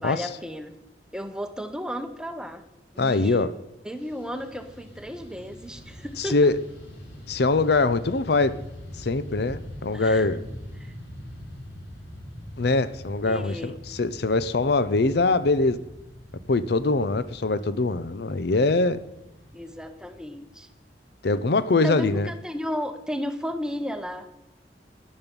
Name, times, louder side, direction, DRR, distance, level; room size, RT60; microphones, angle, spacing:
voice 1, 0.0-0.8 1.1-2.6 2.9-3.5 3.8-6.5 9.9-10.3 10.8-10.9 13.3-13.7 19.5-20.7 21.8-24.3, equal, 5° right, 9 dB, 0.9 m, -34 dB
voice 2, 3.0-3.5 6.2-6.6 7.3-8.6 9.0-10.4 12.6-15.8 16.5-19.0 21.2-22.3, left 3 dB, 60° left, 14 dB, 0.6 m, -23 dB
Fixed-wing aircraft airplane, 4.0-21.4, equal, 90° left, 5.6 m, -43 dB
13.0 x 11.0 x 5.3 m, 0.97 s
head